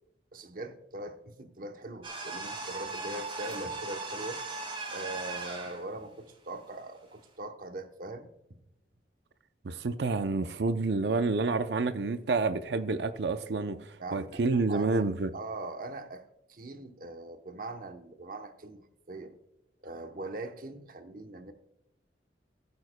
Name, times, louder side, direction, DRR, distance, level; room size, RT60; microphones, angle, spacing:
voice 1, 0.3-4.4 4.9-8.6 14.0-15.0 15.3-16.2 16.5-19.4 19.8-21.5, right 2 dB, 50° right, 0.9 m, -41 dB
sound 1, 2.0-5.8, right 3 dB, 30° right, 2.5 m, -38 dB
voice 2, 9.6-15.3, right 3 dB, 75° right, 0.5 m, -29 dB
15.5 x 9.6 x 2.2 m
head